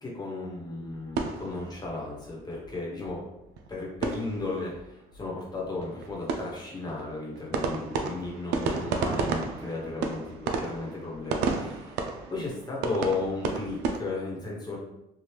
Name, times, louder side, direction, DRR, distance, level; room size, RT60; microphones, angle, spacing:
voice 1, 0.0-3.2 3.7-12.0 12.3-14.8, left 3 dB, 25° left, -4 dB, 1.1 m, -35 dB
sound 1, 0.8-2.3 2.6-2.7 3.0-3.1 3.4-4.8 5.1-5.2 5.5-14.0, right 4 dB, 85° right, 0.4 m, -32 dB
3.4 x 2.4 x 3.0 m, 0.87 s
cardioid pair, 110°, 17 cm